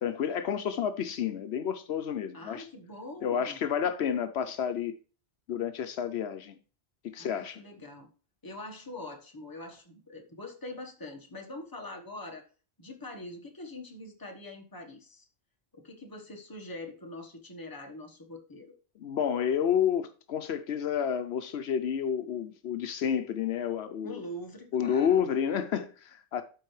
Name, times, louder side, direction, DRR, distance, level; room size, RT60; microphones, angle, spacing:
voice 1, 0.0-2.7 3.2-4.9 5.5-6.6 7.1-7.6 19.0-24.2 24.7-26.4, left 8 dB, 75° left, 0.9 m, -30 dB
voice 2, 2.3-3.6 7.2-8.1 8.4-12.4 12.8-15.3 15.7-18.7 24.0-25.3, left 1 dB, 20° left, 1.2 m, -43 dB
12.5 x 4.6 x 3.2 m
omnidirectional pair, 1.1 m